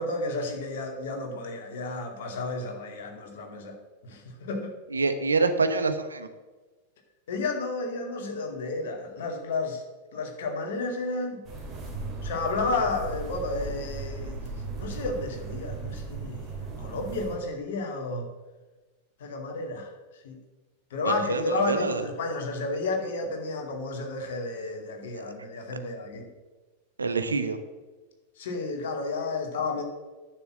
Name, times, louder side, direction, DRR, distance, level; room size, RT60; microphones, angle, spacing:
voice 1, 0.0-3.7 4.0-4.7 7.3-9.8 10.1-11.4 12.2-14.4 14.7-16.5 16.8-18.3 19.2-19.9 20.2-20.4 20.9-26.3 28.4-29.8, left 3 dB, 55° left, 3 dB, 2.4 m, -31 dB
voice 2, 4.9-6.3 21.0-22.1 25.1-25.2 27.0-27.6, right 4 dB, 75° right, 9 dB, 1.0 m, -26 dB
sound 1, 11.4-17.4, right 3 dB, 25° right, 3.2 m, -37 dB
10.5 x 6.8 x 7.4 m, 1.2 s
figure-of-eight pair, 90°, 0 cm